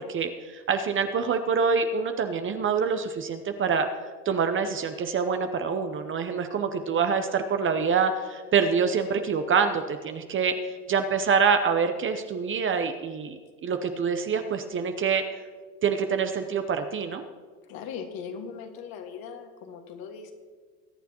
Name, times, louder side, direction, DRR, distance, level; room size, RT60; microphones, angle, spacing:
voice 1, 0.0-3.9 4.2-15.2 15.8-17.2, right 6 dB, 25° right, 7 dB, 0.8 m, -26 dB
voice 2, 17.7-20.3, left 6 dB, 45° left, 4 dB, 1.9 m, -39 dB
21.5 x 9.2 x 3.0 m, 1.6 s
hypercardioid pair, 95°, 47 cm